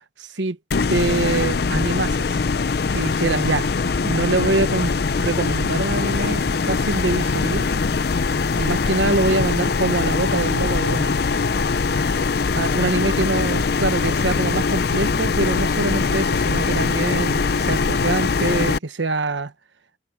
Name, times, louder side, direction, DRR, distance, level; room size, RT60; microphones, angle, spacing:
voice 1, 0.2-0.6 0.9-2.4 2.9-3.7 4.0-7.7 8.5-11.1 12.5-19.5, right 3 dB, 85° right, 1.1 m, -24 dB
sound 1, 0.7-18.8, left 4 dB, 55° left, 0.5 m, -22 dB
head